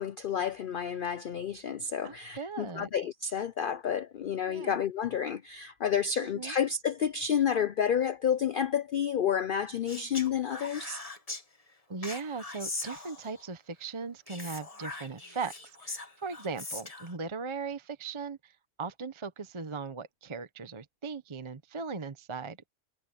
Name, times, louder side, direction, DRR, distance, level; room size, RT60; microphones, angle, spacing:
voice 1, 0.0-11.0, left 8 dB, 80° left, 0.4 m, -30 dB
voice 2, 2.0-2.9 4.5-4.8 6.3-6.6 11.9-22.7, right 4 dB, 25° right, 0.8 m, -38 dB
Speech, 9.9-11.4 12.0-13.5 14.3-17.1, left 3 dB, 25° left, 1.5 m, -41 dB
omnidirectional pair, 1.6 m